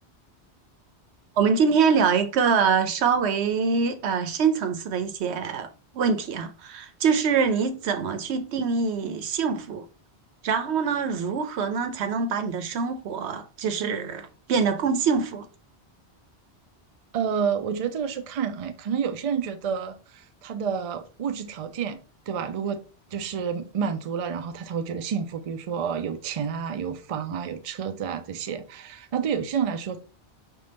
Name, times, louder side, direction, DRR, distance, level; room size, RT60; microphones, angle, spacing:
voice 1, 1.4-5.7 5.9-9.9 10.4-15.5, right 5 dB, 85° right, 0.9 m, -24 dB
voice 2, 17.1-22.0 22.3-22.8 23.1-30.0, right 7 dB, 50° right, 0.4 m, -29 dB
5.3 x 2.4 x 3.3 m
omnidirectional pair, 1.1 m